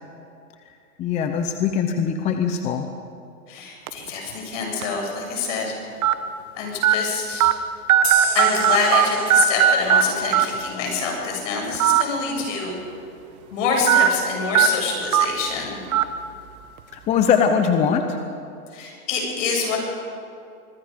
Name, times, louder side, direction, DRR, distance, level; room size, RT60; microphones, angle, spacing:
voice 1, 1.0-2.9 16.9-18.2, left 7 dB, 15° left, 7 dB, 0.7 m, -21 dB
voice 2, 3.5-5.8 6.5-7.5 8.3-12.7 13.5-15.8 18.7-19.8, left 4 dB, 55° left, 0 dB, 7.4 m, -26 dB
sound 1, 3.9-4.1 4.8-4.9 6.0-6.1 6.8-6.9 7.4-7.5 7.9-9.0 9.3-10.0 10.3-10.4 11.7-12.0 12.4-12.5 13.9-14.1 14.5-14.7 15.1-15.3 15.9-16.0, right 10 dB, 65° right, 1.5 m, -16 dB
sound 2, 8.0-11.4, right 8 dB, 50° right, 3.7 m, -33 dB
24.5 x 22.0 x 5.2 m, 2.5 s
hypercardioid pair, 140°, 45 cm